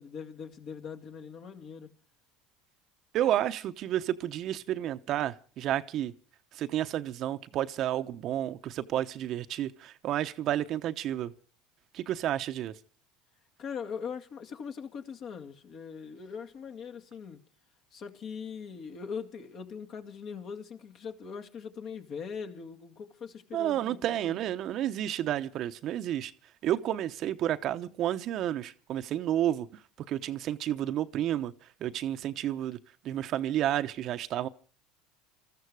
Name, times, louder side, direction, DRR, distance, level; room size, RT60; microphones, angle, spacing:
voice 1, 0.0-1.9 13.6-17.4 17.9-24.4, left 6 dB, 50° left, 2.3 m, -41 dB
voice 2, 3.1-6.1 6.5-11.3 11.9-12.7 23.5-26.3 26.6-29.7 30.1-31.5 31.8-32.8 33.0-34.5, right 12 dB, 50° right, 0.9 m, -31 dB
20.5 x 13.5 x 4.8 m
supercardioid pair, 100°, 0 cm